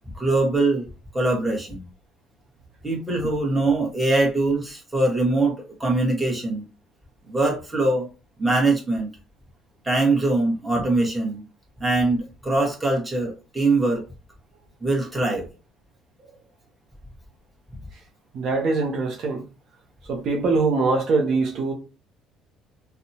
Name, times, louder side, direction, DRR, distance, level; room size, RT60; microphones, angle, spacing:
voice 1, 0.1-0.8 1.1-1.8 2.8-5.5 5.8-6.6 7.3-8.1 8.4-9.1 9.8-11.4 11.8-14.0 14.8-15.4, right 2 dB, 10° right, 1.3 m, -22 dB
voice 2, 18.3-19.4 20.1-21.7, right 3 dB, 60° right, 0.7 m, -22 dB
2.7 x 2.2 x 2.7 m
supercardioid pair, 80°, 0 cm